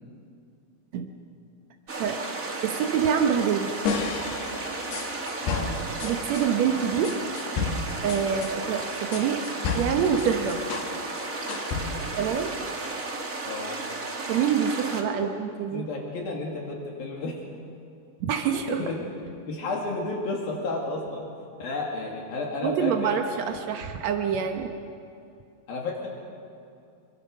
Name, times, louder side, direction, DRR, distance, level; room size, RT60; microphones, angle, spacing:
sound 1, 1.9-15.0, right 3 dB, 35° right, 1.4 m, -34 dB
voice 1, 2.6-3.7 6.0-7.2 7.4-7.6 8.0-9.4 9.7-10.6 12.2-12.6 14.3-15.9 18.2-18.8 22.6-24.7, right 7 dB, 85° right, 5 dB, 1.5 m, -26 dB
sound 2, 3.9-6.5 7.0-10.9 11.2-12.2, left 4 dB, 85° left, 3.6 m, -32 dB
voice 2, 15.7-17.3 18.7-19.0 19.5-21.3 21.6-23.2 25.7-26.1, left 2 dB, 65° left, -1 dB, 4.0 m, -32 dB
26.0 x 23.5 x 6.5 m, 2.5 s
omnidirectional pair, 4.6 m